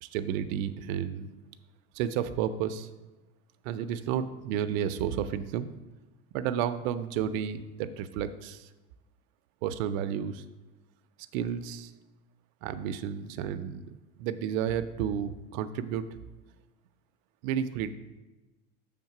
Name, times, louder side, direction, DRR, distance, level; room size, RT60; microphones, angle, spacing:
voice 1, 0.0-1.4 2.0-2.9 3.6-5.7 6.3-8.7 9.6-10.4 11.3-11.9 12.6-16.1 17.4-17.9, right 9 dB, 85° right, 11 dB, 0.6 m, -32 dB
7.2 x 3.6 x 5.8 m, 1.1 s
supercardioid pair, 125°, 39 cm